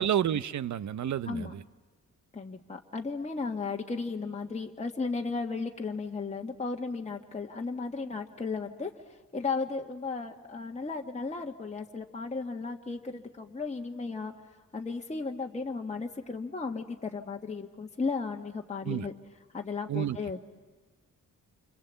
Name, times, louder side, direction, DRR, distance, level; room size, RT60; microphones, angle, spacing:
voice 1, 0.0-1.6 18.8-19.1 19.9-20.2, right 10 dB, 65° right, 16 dB, 0.8 m, -30 dB
voice 2, 2.3-8.9 9.3-14.3 14.7-19.1 19.5-20.4, left 4 dB, 20° left, 1 dB, 1.5 m, -35 dB
29.0 x 25.5 x 8.1 m, 1.3 s
cardioid pair, 95°, 31 cm